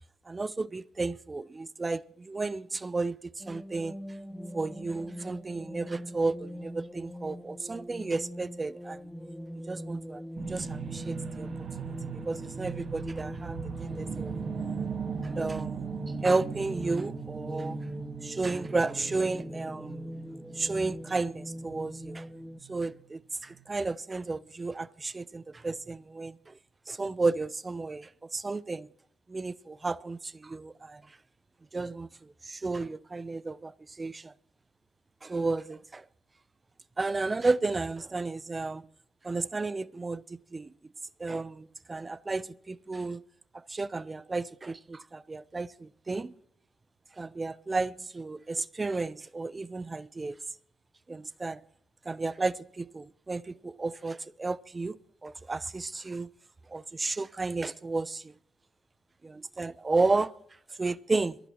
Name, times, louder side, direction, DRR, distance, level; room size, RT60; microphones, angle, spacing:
voice 1, 0.3-4.0 4.5-9.1 9.7-10.2 10.5-11.5 11.8-14.3 15.2-15.8 16.2-17.8 18.2-20.0 20.5-22.3 22.7-26.6 26.9-28.9 29.3-31.2 31.7-34.3 35.2-36.1 37.0-38.9 39.2-40.7 41.2-43.2 43.5-46.3 47.2-50.4 51.1-51.6 52.0-56.3 56.7-58.3 59.2-60.3 60.8-61.4, right 3 dB, 30° right, 0.7 m, -33 dB
sound 1, 3.4-22.6, equal, 5° left, 0.8 m, -41 dB
sound 2, 10.4-23.0 23.5-23.6, right 7 dB, 50° right, 1.8 m, -40 dB
23.0 x 14.5 x 3.0 m
hypercardioid pair, 55°, 0 cm